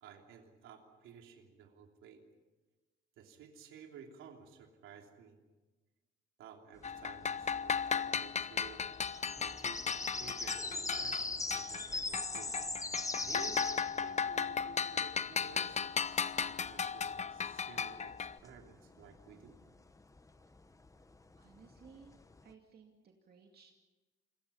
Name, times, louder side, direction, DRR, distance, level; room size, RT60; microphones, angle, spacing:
voice 1, 0.0-2.2 3.2-5.4 6.4-8.8 9.4-12.5 12.8-19.6, right 7 dB, 85° right, 3 dB, 3.2 m, -54 dB
sound 1, 6.8-11.9 12.1-18.4, left 6 dB, 35° left, 0.8 m, -36 dB
sound 2, 6.8-22.5, left 3 dB, 15° left, 1.1 m, -42 dB
voice 2, 21.4-22.1 22.4-23.7, right 5 dB, 50° right, 1 dB, 2.4 m, -59 dB
27.5 x 22.0 x 5.7 m, 1.2 s
cardioid pair, 90°, 20 cm